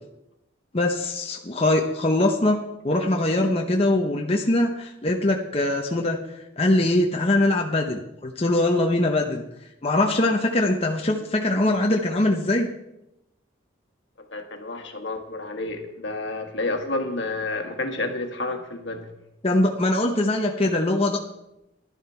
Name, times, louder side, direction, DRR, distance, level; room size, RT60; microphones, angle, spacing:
voice 1, 0.7-2.6 2.8-6.2 6.6-9.4 9.8-12.7 19.4-21.2, left 1 dB, 30° left, 1 dB, 0.8 m, -22 dB
voice 2, 14.2-19.1, left 2 dB, 65° left, 5 dB, 1.5 m, -30 dB
11.5 x 10.5 x 4.4 m, 0.89 s
head